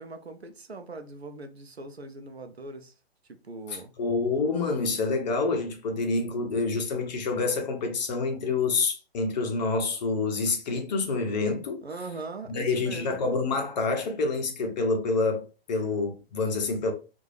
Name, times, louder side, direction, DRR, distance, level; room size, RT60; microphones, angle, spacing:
voice 1, 0.0-2.9 3.4-3.9 11.8-13.2, right 3 dB, 90° right, 0.7 m, -40 dB
voice 2, 3.7-11.8 12.5-16.9, left 3 dB, 45° left, 1.0 m, -27 dB
3.9 x 2.6 x 3.2 m
figure-of-eight pair, 125°, 31 cm